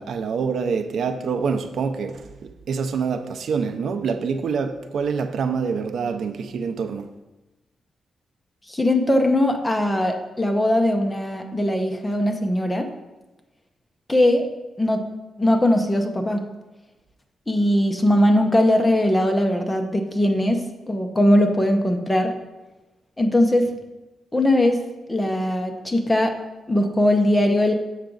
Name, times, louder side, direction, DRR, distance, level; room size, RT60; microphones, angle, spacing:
voice 1, 0.0-7.1, right 5 dB, 65° right, 0.4 m, -26 dB
voice 2, 8.7-12.9 14.1-14.5 14.8-15.0 15.4-16.4 17.5-22.3 23.2-23.7 24.3-26.4 26.7-27.7, left 1 dB, 10° left, 0.7 m, -20 dB
7.3 x 5.8 x 3.8 m
wide cardioid pair, 155°, 0 cm